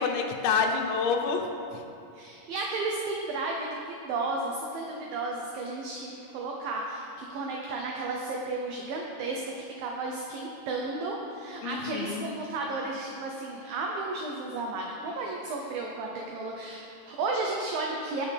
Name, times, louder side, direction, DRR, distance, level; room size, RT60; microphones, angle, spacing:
voice 1, 0.0-1.4 11.6-12.2, left 5 dB, 80° left, 3 dB, 3.2 m, -27 dB
voice 2, 2.1-18.3, right 3 dB, 75° right, 0 dB, 2.2 m, -33 dB
18.5 x 8.4 x 3.5 m, 2.6 s
omnidirectional pair, 5.0 m